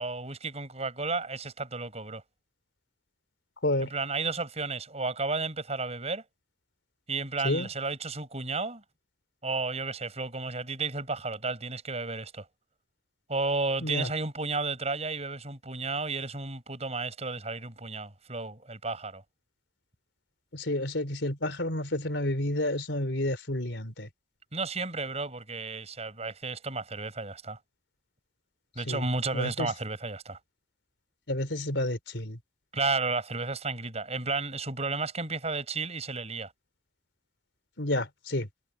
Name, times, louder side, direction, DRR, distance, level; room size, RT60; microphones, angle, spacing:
voice 1, 0.0-2.2 3.8-6.2 7.1-8.8 9.4-12.4 13.3-19.2 24.5-27.6 28.7-30.4 32.7-36.5, right 3 dB, 35° right, 6.5 m, -32 dB
voice 2, 20.5-24.1 28.9-29.0 29.3-29.7 31.3-32.4 37.8-38.5, left 1 dB, 80° left, 3.6 m, -30 dB
head